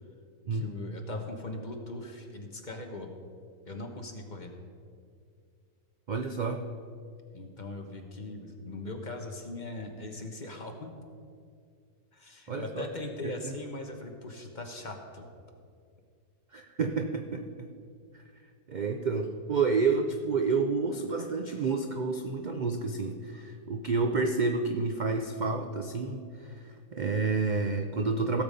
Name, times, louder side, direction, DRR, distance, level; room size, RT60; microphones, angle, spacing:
voice 1, 0.5-3.1 3.6-4.5 7.3-10.9 12.1-15.3, left 2 dB, 35° left, 3 dB, 1.1 m, -40 dB
voice 2, 6.1-6.6 12.5-12.9 13.2-13.5 16.5-17.4 18.7-28.4, right 4 dB, 60° right, 5 dB, 0.4 m, -29 dB
16.5 x 7.2 x 5.2 m, 2.2 s
omnidirectional pair, 1.6 m